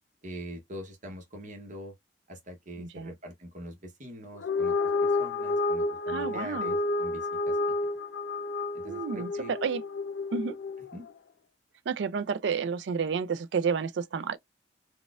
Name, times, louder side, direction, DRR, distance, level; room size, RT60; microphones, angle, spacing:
voice 1, 0.2-1.9 2.3-4.7 5.0-7.2 7.4-7.6 8.8-9.5 10.9-11.1, equal, 45° right, 0.9 m, -43 dB
voice 2, 2.8-3.1 6.1-6.7 8.9-9.8 10.3-10.6 11.9-14.4, right 6 dB, 70° right, 0.4 m, -30 dB
Wolf Howl, 4.3-10.9, left 3 dB, 85° left, 0.4 m, -30 dB
4.0 x 2.2 x 2.3 m
head